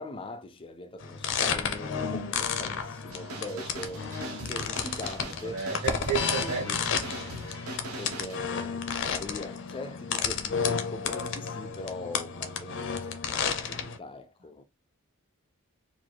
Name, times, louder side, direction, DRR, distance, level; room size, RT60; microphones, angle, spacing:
voice 1, 0.0-5.7 6.0-6.8 8.0-14.6, left 2 dB, 25° left, 0.4 m, -42 dB
sound 1, 1.0-14.0, left 6 dB, 55° left, 0.7 m, -32 dB
sound 2, 3.1-8.4, right 2 dB, 70° right, 1.2 m, -41 dB
voice 2, 5.4-6.9, right 6 dB, 55° right, 1.4 m, -32 dB
4.2 x 2.5 x 4.5 m
head